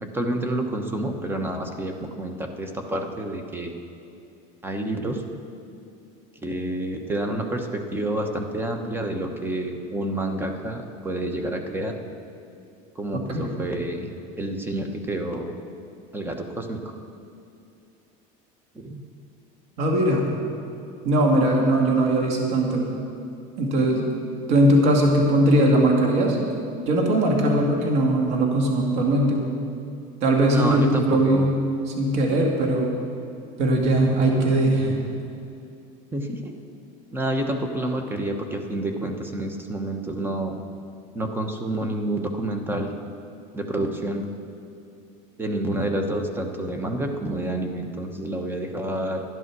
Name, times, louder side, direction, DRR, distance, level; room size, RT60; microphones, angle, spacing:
voice 1, 0.0-3.7 4.6-5.2 6.4-12.0 12.9-15.6 16.1-16.9 18.7-19.0 30.5-31.5 36.1-36.5 37.1-40.6 41.1-42.9 43.5-44.3 45.4-49.2, right 1 dB, 10° right, 5 dB, 1.1 m, -29 dB
voice 2, 19.8-20.3 21.0-22.9 23.6-24.1 24.5-26.4 26.9-29.5 30.2-31.5 31.9-32.9 33.6-35.0, right 1 dB, 70° right, 0 dB, 2.3 m, -20 dB
12.5 x 11.0 x 6.1 m, 2.6 s
cardioid pair, 150°, 18 cm